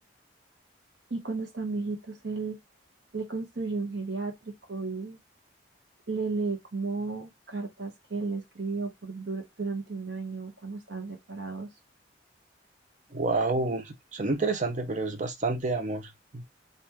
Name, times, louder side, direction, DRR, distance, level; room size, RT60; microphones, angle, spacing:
voice 1, 1.1-2.6 3.1-5.2 6.1-11.7, right 3 dB, 65° right, 1.0 m, -34 dB
voice 2, 13.1-16.4, right 3 dB, 40° right, 0.5 m, -29 dB
3.4 x 2.5 x 2.9 m
head